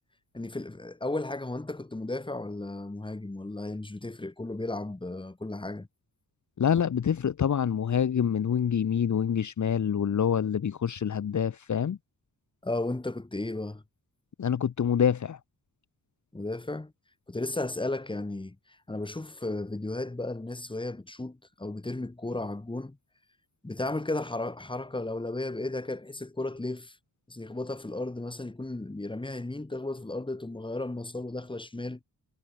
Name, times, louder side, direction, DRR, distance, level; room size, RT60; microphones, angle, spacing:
voice 1, 0.3-5.9 12.6-13.8 16.3-16.9 17.3-18.6 18.9-23.0 23.6-26.9 27.3-32.0, left 2 dB, 15° left, 4.3 m, -34 dB
voice 2, 6.6-12.0 14.4-15.4, left 8 dB, 50° left, 1.5 m, -26 dB
wide cardioid pair, 165°, 37 cm